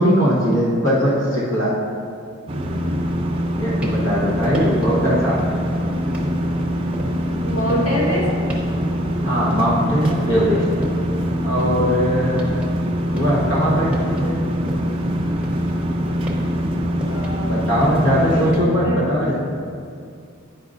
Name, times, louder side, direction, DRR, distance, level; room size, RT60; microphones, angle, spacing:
voice 1, 0.0-1.7 3.6-5.6 9.2-10.7 11.4-12.5 13.1-14.4 17.5-19.4, equal, 60° left, -6 dB, 1.2 m, -20 dB
sound 1, 2.5-18.5, equal, 25° right, 0.5 m, -23 dB
sound 2, 3.8-4.2 4.5-5.0 5.4-5.8 6.1-9.8 10.0-10.5 10.8-12.7 13.0-15.0 15.4-18.6, equal, 5° right, 0.8 m, -33 dB
voice 2, 7.4-8.3 17.1-19.1, equal, 80° left, -6 dB, 1.3 m, -25 dB
sound 3, 10.1-11.4 11.6-11.9 12.1-16.2 16.6-16.7 17.1-17.3 17.6-17.8, equal, 70° right, 0.8 m, -36 dB
9.1 x 5.3 x 2.5 m, 2.3 s
head